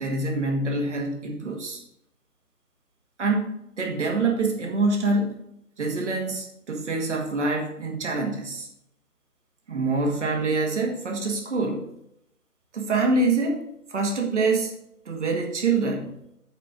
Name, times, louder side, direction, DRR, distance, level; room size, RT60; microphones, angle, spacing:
voice 1, 0.0-1.8 3.2-5.4 5.8-8.7 9.7-11.9 12.7-14.7 15.1-16.1, right 3 dB, 50° right, 2 dB, 1.9 m, -25 dB
9.2 x 5.1 x 5.3 m, 0.79 s
figure-of-eight pair, 150°, 45 cm